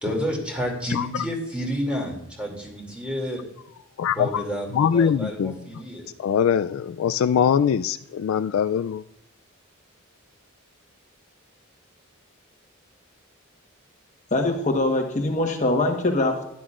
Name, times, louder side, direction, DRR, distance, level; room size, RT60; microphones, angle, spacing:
voice 1, 0.0-3.4 4.1-6.1, equal, 5° right, 0 dB, 2.5 m, -30 dB
voice 2, 4.0-4.4 4.8-5.5 6.2-9.0, left 7 dB, 70° left, 12 dB, 0.3 m, -22 dB
voice 3, 14.3-16.5, left 2 dB, 35° left, 2 dB, 1.2 m, -23 dB
12.5 x 10.5 x 2.4 m, 0.79 s
head